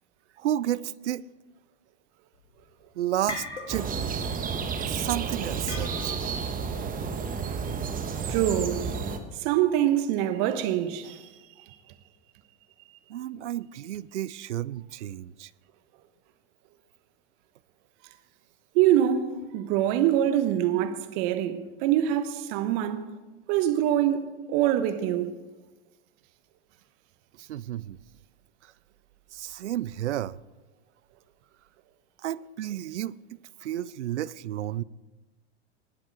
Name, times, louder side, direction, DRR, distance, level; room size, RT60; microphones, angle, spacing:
voice 1, 0.4-1.2 3.0-3.9 4.5-6.1 13.1-15.5 27.4-28.0 28.6-28.7 29.3-30.4 32.2-34.8, right 12 dB, 85° right, 0.5 m, -32 dB
sound 1, 2.4-2.7 3.0-4.1 4.4-4.7 5.7-6.4, left 4 dB, 90° left, 1.8 m, -38 dB
sound 2, 3.7-9.2, right 5 dB, 25° right, 1.3 m, -31 dB
voice 2, 8.3-8.8 9.4-11.3 18.7-23.0 23.5-25.3, right 11 dB, 50° right, 1.2 m, -24 dB
19.5 x 7.7 x 4.8 m
hypercardioid pair, 100°, 34 cm